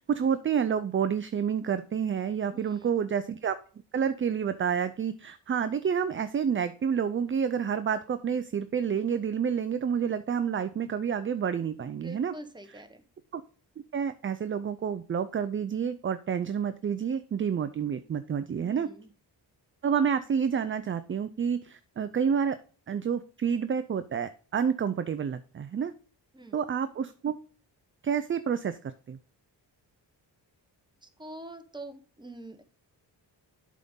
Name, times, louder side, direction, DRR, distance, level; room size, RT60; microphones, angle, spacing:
voice 1, 0.0-3.6 3.9-12.3 13.3-13.4 13.9-18.9 19.8-22.6 22.9-25.9 26.5-27.4 28.0-29.2, right 7 dB, 30° right, 12 dB, 0.4 m, -29 dB
voice 2, 2.5-2.9 12.0-13.0 18.6-19.1 26.3-26.6 31.0-32.6, right 1 dB, 10° right, 7 dB, 1.1 m, -45 dB
7.6 x 3.7 x 5.4 m, 0.40 s
cardioid pair, 85°, 44 cm